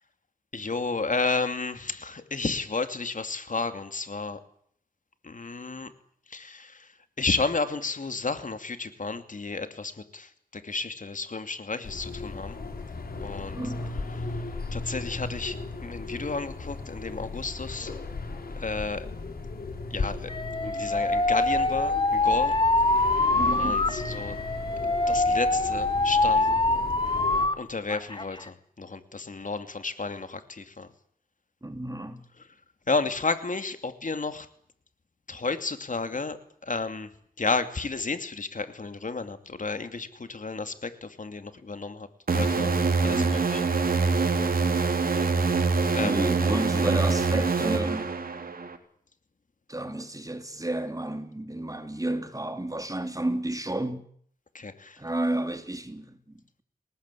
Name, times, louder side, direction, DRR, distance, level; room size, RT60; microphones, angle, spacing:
voice 1, 0.5-4.4 5.2-5.9 6.3-6.9 7.2-12.6 13.2-13.6 14.7-17.9 18.6-19.1 19.9-20.3 20.6-22.6 23.5-24.3 25.1-26.5 27.5-30.9 32.9-34.5 35.3-36.4 36.6-37.1 37.4-42.7 43.0-43.2 43.5-43.6 45.9-46.2 54.5-55.0, left 3 dB, 60° left, 2.7 m, -32 dB
sound 1, 11.8-27.5, left 3 dB, 80° left, 4.9 m, -36 dB
voice 2, 13.5-14.0 23.3-23.9 31.6-32.2 43.1-43.3 46.0-48.1 49.7-54.1 55.0-56.6, right 1 dB, 20° right, 3.5 m, -31 dB
Alarm, 20.3-27.6 27.9-28.5, left 2 dB, 35° left, 2.2 m, -24 dB
sound 2, 42.3-48.8, right 4 dB, 70° right, 3.4 m, -25 dB
28.0 x 19.0 x 8.5 m
cardioid pair, 50°, 15 cm